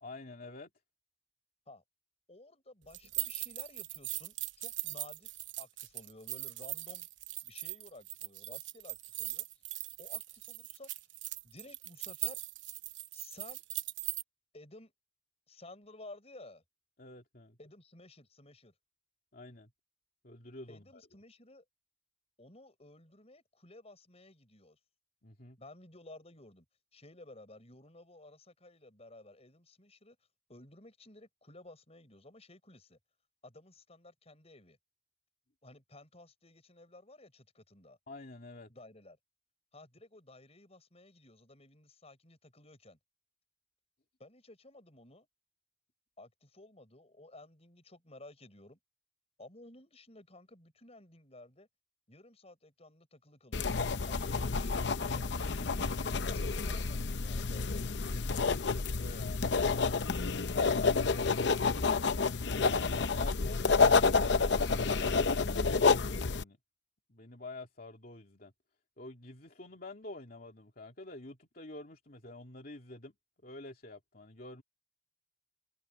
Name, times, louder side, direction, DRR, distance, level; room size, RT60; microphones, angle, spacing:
voice 1, 0.0-0.7 17.0-17.6 19.3-19.7 20.2-21.0 25.2-25.6 38.1-38.7 56.2-56.7 58.1-59.4 59.7-61.3 62.0-62.3 62.8-66.0 66.3-66.6 67.1-68.5 69.0-73.1 73.4-74.6, left 2 dB, 50° left, 2.8 m, -49 dB
voice 2, 2.3-7.1 7.4-9.4 10.0-10.9 11.4-12.4 13.1-13.6 14.5-14.9 15.5-16.6 17.6-18.7 20.7-21.6 22.4-24.8 25.6-26.6 26.9-30.2 30.5-33.0 33.4-34.8 35.6-38.0 38.7-39.2 39.7-43.0 44.2-45.3 46.2-48.8 49.4-51.7 52.1-53.8 54.1-55.7 56.2-57.7, left 2 dB, 35° left, 6.6 m, -54 dB
sound 1, 2.9-14.2, right 16 dB, 85° right, 0.9 m, -40 dB
sound 2, 53.5-66.4, left 4 dB, 65° left, 0.8 m, -29 dB
head